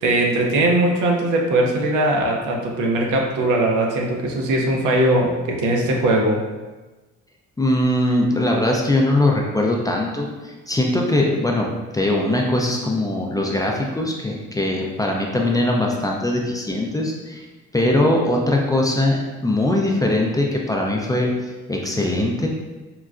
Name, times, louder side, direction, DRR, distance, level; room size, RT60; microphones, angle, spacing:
voice 1, 0.0-6.4, right 1 dB, 80° right, 0 dB, 0.6 m, -20 dB
voice 2, 7.6-17.5 17.7-22.5, left 1 dB, 10° left, -1 dB, 0.4 m, -21 dB
3.7 x 2.2 x 2.4 m, 1.2 s
cardioid pair, 90°, 30 cm